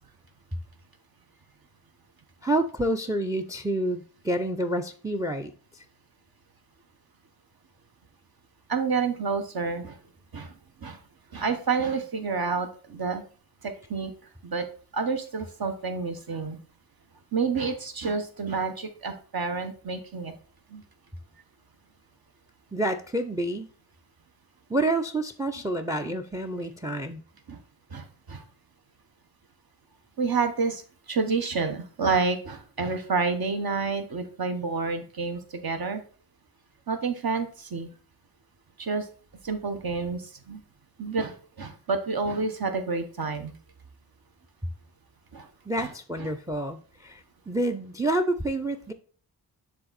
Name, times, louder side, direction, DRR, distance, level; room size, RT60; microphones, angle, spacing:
voice 1, 2.4-5.5 22.7-23.7 24.7-27.2 45.7-48.9, right 1 dB, 10° right, 0.5 m, -28 dB
voice 2, 8.7-10.0 10.3-10.5 10.8-11.0 11.3-13.2 13.6-14.1 14.4-14.7 14.9-16.6 17.3-20.3 20.7-20.8 27.5-27.6 27.9-28.4 30.2-30.8 31.1-36.0 36.9-37.9 38.8-39.1 39.4-40.6 41.0-43.5 45.3-45.5 45.8-45.9 46.2-46.3, right 4 dB, 55° right, 1.1 m, -29 dB
6.8 x 3.6 x 4.0 m
cardioid pair, 50°, 42 cm